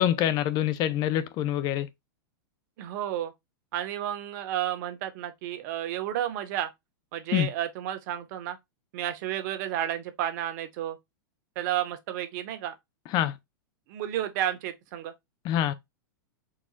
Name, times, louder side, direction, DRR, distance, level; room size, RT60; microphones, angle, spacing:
voice 1, 0.0-1.9 7.3-7.5 13.1-13.3 15.4-15.7, left 11 dB, 35° left, 0.6 m, -25 dB
voice 2, 2.8-3.3 3.7-6.7 7.1-8.6 8.9-11.0 11.5-12.7 13.9-15.1, right 11 dB, 55° right, 1.2 m, -31 dB
4.5 x 4.2 x 2.3 m
hypercardioid pair, 130°, 12 cm